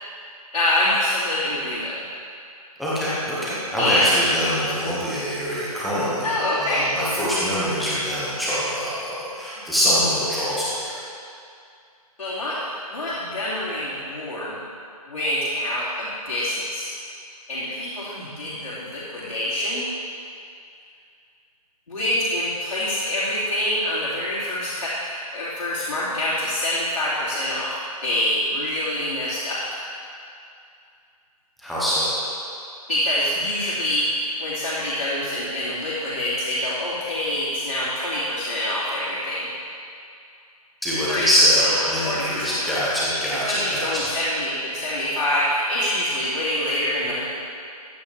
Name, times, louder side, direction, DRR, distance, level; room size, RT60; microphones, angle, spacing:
voice 1, 0.5-2.0 3.8-4.1 6.2-6.9 9.6-9.7 12.2-14.6 15.1-16.9 17.5-19.8 21.9-29.6 32.9-39.5 41.1-41.3 41.6-42.7 43.5-47.2, left 1 dB, 70° left, -10 dB, 2.7 m, -26 dB
voice 2, 2.8-6.3 6.6-10.9 31.6-32.1 40.8-43.9, equal, ahead, -10 dB, 0.7 m, -23 dB
14.5 x 8.5 x 3.3 m, 2.4 s
hypercardioid pair, 170°, 20 cm